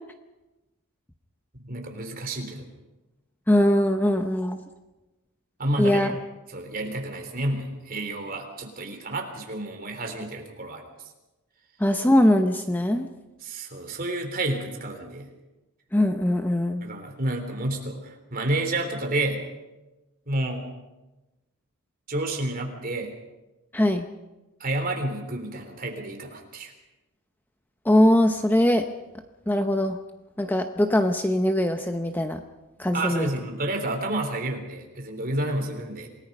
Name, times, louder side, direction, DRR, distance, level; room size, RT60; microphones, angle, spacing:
voice 1, 1.5-2.7 5.6-6.1 6.5-10.8 13.4-15.3 16.8-19.4 20.3-20.7 22.1-23.1 24.6-26.7 32.9-36.1, right 1 dB, 40° right, 4 dB, 3.4 m, -30 dB
voice 2, 3.5-4.6 5.8-6.1 11.8-13.1 15.9-16.8 23.7-24.1 27.8-28.8 29.5-30.0 30.4-32.4 32.8-33.3, left 1 dB, 10° left, 6 dB, 0.7 m, -21 dB
27.5 x 18.5 x 5.4 m, 1.1 s
head